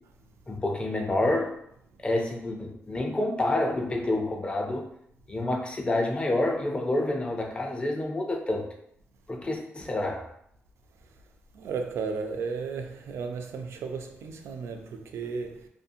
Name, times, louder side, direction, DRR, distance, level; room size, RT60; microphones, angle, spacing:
voice 1, 0.5-1.5 2.0-4.8 5.3-8.6 9.3-10.2, left 1 dB, 25° left, 0.4 m, -28 dB
voice 2, 11.5-15.7, right 5 dB, 85° right, 0.3 m, -34 dB
2.5 x 2.4 x 2.6 m
cardioid pair, 110°, 4 cm